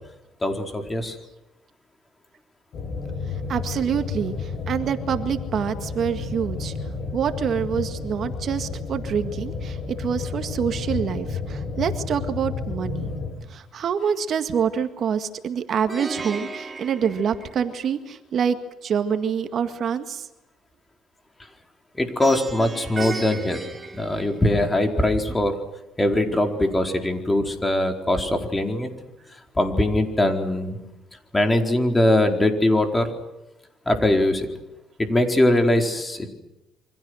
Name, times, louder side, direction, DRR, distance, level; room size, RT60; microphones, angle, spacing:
voice 1, 0.4-1.2 22.0-23.6 23.9-25.6 26.0-28.9 29.6-30.8 31.3-33.1 33.9-34.5 35.0-36.3, left 1 dB, 15° left, 5 dB, 4.5 m, -21 dB
sound 1, 2.7-13.3, left 4 dB, 55° left, 7.3 m, -31 dB
voice 2, 3.5-6.7 7.1-13.1 13.5-18.6 18.8-20.3, right 7 dB, 55° right, 8 dB, 1.9 m, -26 dB
Plucked string instrument, 15.9-18.0 22.2-24.8, right 4 dB, 20° right, 2.5 m, -35 dB
28.5 x 25.0 x 6.5 m, 0.96 s
cardioid pair, 110°, 0 cm